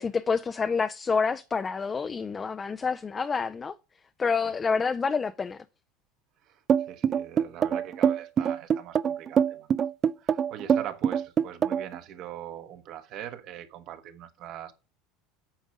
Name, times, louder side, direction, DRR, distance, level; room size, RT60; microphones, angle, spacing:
voice 1, 0.0-3.8 4.2-5.6, left 5 dB, 25° left, 0.5 m, -28 dB
voice 2, 6.4-9.7 10.2-14.7, right 11 dB, 55° right, 1.3 m, -42 dB
sound 1, 6.7-12.0, right 8 dB, 35° right, 0.4 m, -24 dB
8.9 x 5.2 x 5.2 m
supercardioid pair, 115°, 0 cm